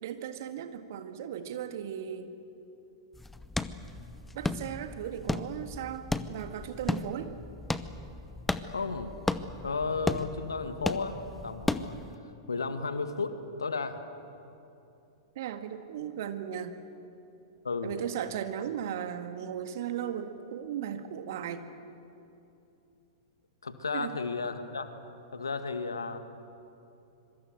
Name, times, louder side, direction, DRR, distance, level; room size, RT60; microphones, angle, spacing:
voice 1, 0.0-2.3 4.3-7.3 15.4-16.7 17.8-21.7 23.9-24.2, right 9 dB, 50° right, 8 dB, 1.8 m, -36 dB
sound 1, 3.1-12.1, left 2 dB, 5° left, 0.8 m, -35 dB
voice 2, 8.7-9.1 9.6-12.0 12.5-14.0 17.6-17.9 23.6-24.9 25.3-26.2, left 4 dB, 75° left, 8 dB, 1.9 m, -33 dB
25.5 x 23.5 x 7.9 m, 2.8 s
figure-of-eight pair, 100°, 2 cm